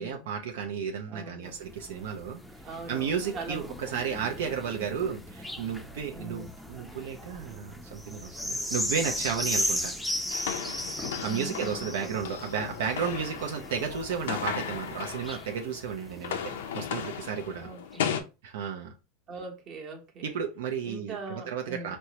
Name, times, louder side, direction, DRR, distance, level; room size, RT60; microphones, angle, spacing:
voice 1, 0.0-2.4 2.9-9.9 11.2-17.7 18.4-18.9 20.2-22.0, right 7 dB, 80° right, 0.5 m, -33 dB
voice 2, 1.1-1.6 2.6-3.8 6.1-6.5 11.2-12.1 17.6-18.3 19.3-20.4 20.8-22.0, right 3 dB, 40° right, 1.0 m, -41 dB
sound 1, 1.5-17.3 17.9-18.0, equal, ahead, 0.5 m, -37 dB
sound 2, 10.3-15.8 16.0-18.2, left 8 dB, 85° left, 0.5 m, -35 dB
4.3 x 2.1 x 2.8 m
supercardioid pair, 120°, 0 cm